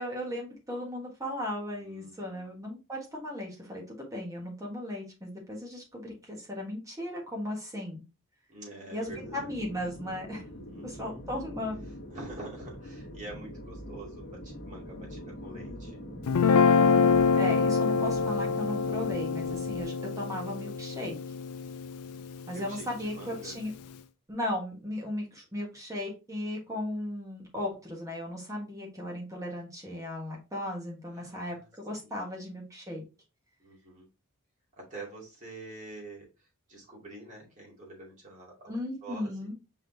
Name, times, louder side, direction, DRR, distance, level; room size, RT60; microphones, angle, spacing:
voice 1, 0.0-8.0 8.9-10.4 10.8-11.8 16.8-21.1 22.5-23.7 24.3-33.0 38.7-39.6, left 1 dB, 15° right, -1 dB, 1.5 m, -36 dB
voice 2, 1.8-2.5 8.5-9.5 10.7-11.2 12.1-16.0 22.5-23.6 31.1-31.7 32.0-32.2 33.6-34.1 34.8-39.5, right 2 dB, 35° right, -3 dB, 2.4 m, -46 dB
sound 1, 9.1-19.8, equal, 50° left, 1.0 m, -44 dB
Guitar, 16.3-22.6, left 5 dB, 85° left, 0.4 m, -26 dB
5.3 x 3.7 x 2.7 m, 0.29 s
head